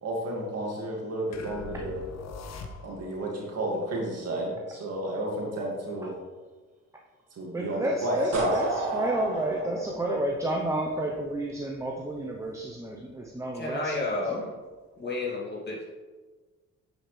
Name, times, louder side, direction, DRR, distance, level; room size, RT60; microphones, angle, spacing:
voice 1, 0.0-2.0 2.8-6.1 7.4-8.5, right 1 dB, 55° right, -2 dB, 2.1 m, -31 dB
sound 1, 1.3-3.2, left 4 dB, 60° left, 0.8 m, -40 dB
voice 2, 7.5-8.7 8.9-14.4, right 1 dB, 10° right, -1 dB, 0.8 m, -31 dB
sound 2, 8.3-11.2, right 3 dB, 90° right, 2.3 m, -32 dB
voice 3, 13.5-14.5 15.0-15.8, left 2 dB, 35° left, -4 dB, 2.3 m, -31 dB
9.1 x 5.1 x 3.3 m, 1.3 s
cardioid pair, 90°, 30 cm